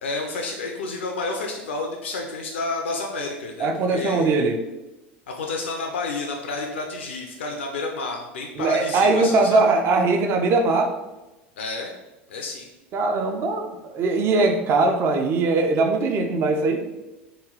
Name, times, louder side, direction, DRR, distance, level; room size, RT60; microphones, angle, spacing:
voice 1, 0.0-4.4 5.3-9.6 11.6-11.9 12.3-12.7, left 3 dB, 75° left, 2 dB, 0.4 m, -30 dB
voice 2, 3.6-4.6 8.6-10.9 12.9-16.9, right 3 dB, 40° right, 5 dB, 0.4 m, -21 dB
3.1 x 2.3 x 3.7 m, 1.0 s
figure-of-eight pair, 80°, 6 cm